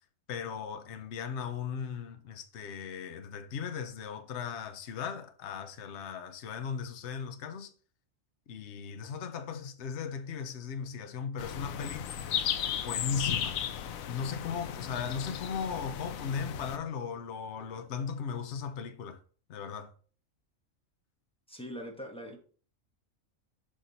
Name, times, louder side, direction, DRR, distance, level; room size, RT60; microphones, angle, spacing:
voice 1, 0.3-7.7 8.5-12.0 12.7-13.6 14.0-19.2 19.5-19.9, left 6 dB, 60° left, 1.0 m, -37 dB
sound 1, 11.4-16.8, left 9 dB, 90° left, 1.1 m, -35 dB
voice 2, 21.5-22.4, equal, 5° left, 1.2 m, -42 dB
5.9 x 5.0 x 4.0 m
omnidirectional pair, 1.4 m